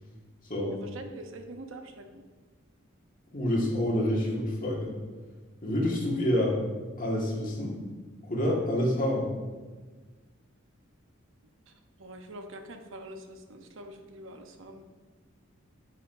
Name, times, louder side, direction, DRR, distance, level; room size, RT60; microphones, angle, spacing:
voice 1, 0.7-2.2 11.7-11.8 12.0-14.8, right 1 dB, 70° right, 5 dB, 0.9 m, -45 dB
voice 2, 3.3-4.9 5.6-6.6 7.0-7.8 8.2-9.3, left 1 dB, 45° left, -2 dB, 1.8 m, -27 dB
10.5 x 6.8 x 2.7 m, 1.4 s
head